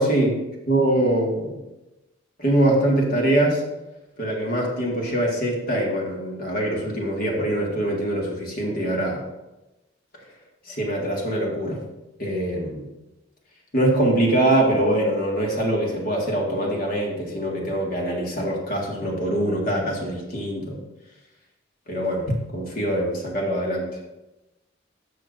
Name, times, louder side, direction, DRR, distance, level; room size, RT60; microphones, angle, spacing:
voice 1, 0.0-0.3 0.7-1.6 2.4-3.6 4.2-9.2 10.7-11.8 12.2-12.8 13.7-20.8 21.9-22.2 22.5-23.9, right 1 dB, 50° left, -2 dB, 1.8 m, -23 dB
12.0 x 6.6 x 2.6 m, 1.0 s
head